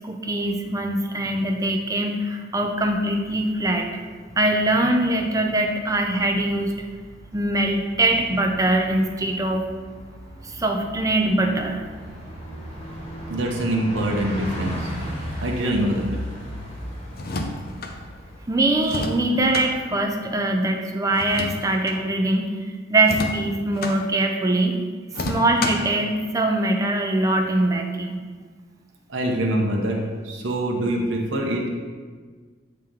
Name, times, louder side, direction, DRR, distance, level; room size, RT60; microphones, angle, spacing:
voice 1, 0.0-3.9 4.4-6.7 7.3-9.6 10.4-11.8 18.5-22.6 22.9-24.8 25.2-28.2, right 2 dB, 20° right, 3 dB, 0.5 m, -22 dB
Bus, 2.8-19.7, equal, 35° left, 1.2 m, -37 dB
voice 2, 13.3-14.9 15.4-16.1 29.1-31.7, right 1 dB, 80° right, -1 dB, 0.8 m, -24 dB
sound 1, 17.1-17.9 18.8-19.7 21.2-22.0 23.0-24.0 25.1-25.9, left 2 dB, 50° left, 0.6 m, -30 dB
8.7 x 2.9 x 3.7 m, 1.5 s
head